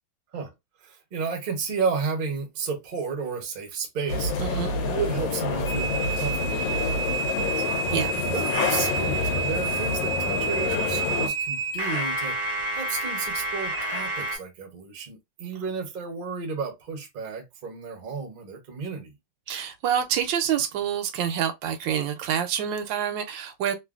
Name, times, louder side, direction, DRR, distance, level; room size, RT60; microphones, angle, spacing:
voice 1, 0.8-4.3 4.9-7.5 8.2-19.1, right 5 dB, 45° right, 0.6 m, -32 dB
sound 1, 4.1-11.3, left 4 dB, 80° left, 1.4 m, -28 dB
voice 2, 4.4-4.7 7.9-8.2 19.5-23.8, right 9 dB, 80° right, 1.3 m, -27 dB
sound 2, 5.6-14.4, right 4 dB, 30° left, 0.8 m, -29 dB
3.1 x 2.5 x 2.3 m
omnidirectional pair, 2.0 m